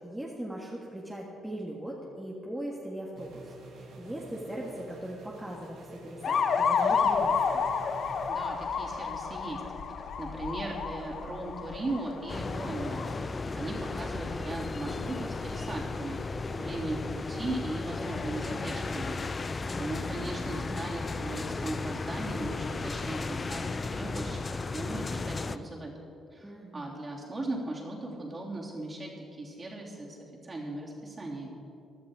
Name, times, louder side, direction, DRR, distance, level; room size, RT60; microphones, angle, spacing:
voice 1, 0.0-7.7 19.7-20.3 26.4-27.0, right 1 dB, 5° right, -3 dB, 1.7 m, -40 dB
sound 1, 3.2-8.3, right 3 dB, 75° right, 2.2 m, -48 dB
sound 2, 6.2-13.2, left 6 dB, 60° left, 0.9 m, -30 dB
voice 2, 8.3-9.6 10.2-16.2 16.6-25.9 26.3-30.2 30.4-31.5, right 2 dB, 30° right, -2 dB, 3.3 m, -38 dB
sound 3, 12.3-25.6, left 3 dB, 30° left, 0.5 m, -35 dB
16.0 x 11.5 x 4.9 m, 2.8 s
cardioid pair, 90°, 0 cm